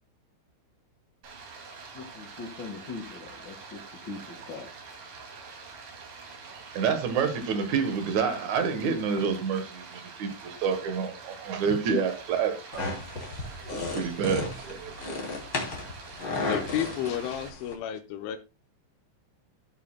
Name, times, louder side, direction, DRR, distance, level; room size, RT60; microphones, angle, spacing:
Stream, 1.2-17.5, right 4 dB, 50° right, 3.8 m, -45 dB
voice 1, 1.9-4.7, left 4 dB, 60° left, 1.1 m, -41 dB
voice 2, 6.5-12.9 13.7-15.2, right 6 dB, 80° right, 1.7 m, -28 dB
sound 1, 12.7-17.7, left 3 dB, 30° left, 2.8 m, -34 dB
voice 3, 16.4-18.4, left 10 dB, 85° left, 3.3 m, -32 dB
16.5 x 8.6 x 2.3 m
omnidirectional pair, 5.4 m